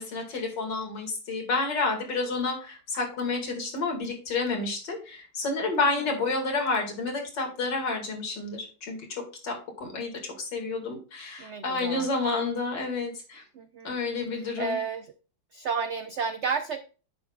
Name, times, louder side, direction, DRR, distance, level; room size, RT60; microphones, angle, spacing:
voice 1, 0.0-13.4 13.8-14.8, left 3 dB, 75° left, 2 dB, 2.8 m, -30 dB
voice 2, 11.4-12.1 13.6-14.0 14.6-15.0 15.5-16.8, right 5 dB, 85° right, 8 dB, 0.6 m, -31 dB
9.8 x 7.2 x 2.4 m, 0.36 s
omnidirectional pair, 2.0 m